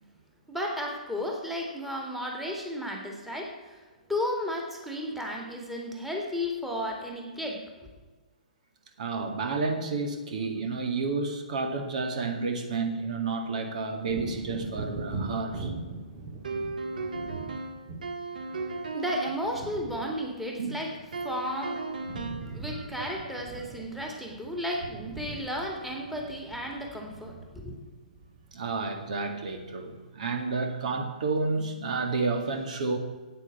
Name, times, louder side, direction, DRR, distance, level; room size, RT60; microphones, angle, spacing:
voice 1, 0.5-3.8 4.1-7.6 18.9-20.9 21.2-21.8 22.5-27.8, left 1 dB, 5° right, 0 dB, 2.2 m, -33 dB
voice 2, 9.0-15.7 20.6-20.8 22.4-23.1 28.5-33.0, right 4 dB, 60° right, 5 dB, 2.0 m, -31 dB
Wind / Thunder, 14.0-21.6 21.9-29.1 29.5-29.7, right 3 dB, 35° right, 2.3 m, -41 dB
sound 1, 16.4-19.4 21.1-22.6, right 3 dB, 75° right, 1.7 m, -35 dB
9.8 x 8.6 x 8.4 m, 1.3 s
hypercardioid pair, 140°, 4 cm